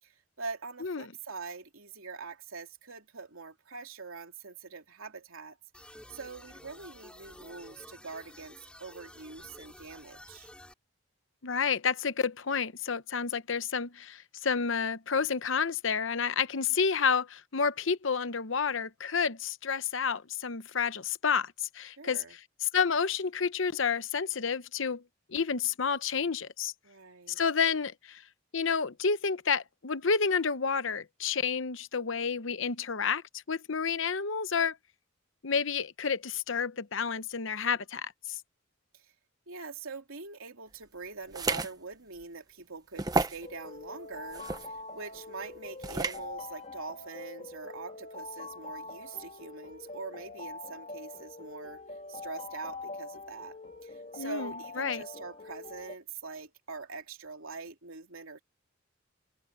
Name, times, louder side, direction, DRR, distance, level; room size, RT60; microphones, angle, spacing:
voice 1, 0.0-5.6 5.8-10.5 16.5-16.8 22.0-22.4 26.8-27.4 38.9-39.1 39.5-58.4, right 4 dB, 80° right, 2.9 m, -44 dB
sound 1, 5.7-10.7, left 1 dB, 5° left, 2.3 m, -51 dB
voice 2, 11.4-22.2 22.6-25.0 25.3-26.7 27.4-28.2 28.5-34.8 35.4-38.1 54.2-55.0, left 6 dB, 65° left, 0.9 m, -30 dB
sound 2, 41.3-41.7 42.2-42.3 43.0-43.4 44.3-44.7 45.8-46.2, right 3 dB, 20° right, 0.9 m, -30 dB
sound 3, 43.4-55.9, left 3 dB, 35° left, 2.9 m, -44 dB
head